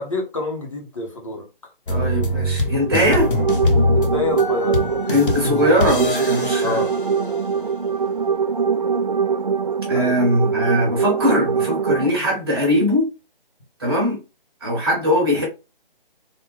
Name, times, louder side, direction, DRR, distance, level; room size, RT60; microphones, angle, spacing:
voice 1, 0.0-1.5 3.9-4.8 6.6-6.9 9.9-10.2, left 3 dB, 35° left, 0.7 m, -27 dB
sound 1, 1.9-7.7, left 2 dB, 60° left, 0.8 m, -23 dB
voice 2, 1.9-3.3 5.1-6.8 9.9-13.1 13.8-14.2 14.6-15.5, equal, 25° right, 1.1 m, -20 dB
sound 2, 2.7-12.1, right 6 dB, 45° right, 0.4 m, -23 dB
3.6 x 2.1 x 3.2 m
figure-of-eight pair, 150°, 29 cm